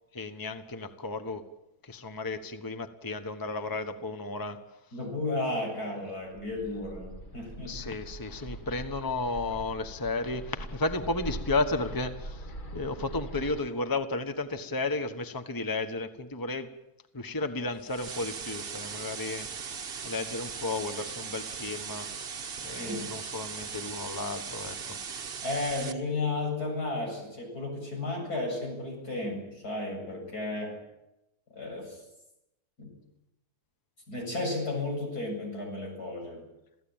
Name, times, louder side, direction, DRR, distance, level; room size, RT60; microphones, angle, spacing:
voice 1, 0.1-1.4 1.8-4.6 7.6-16.7 17.1-19.5 20.0-22.1 22.6-24.8, left 3 dB, 15° left, 9 dB, 1.2 m, -33 dB
voice 2, 4.9-7.9 22.7-23.1 25.4-30.8 31.5-32.0 32.8-32.9 34.1-36.4, left 2 dB, 80° left, 1 dB, 8.3 m, -33 dB
Bird, 6.3-13.6, right 1 dB, 35° left, 1.5 m, -42 dB
sound 1, 17.8-25.9, right 6 dB, 45° right, 1.2 m, -39 dB
28.0 x 16.5 x 8.9 m, 0.90 s
omnidirectional pair, 1.6 m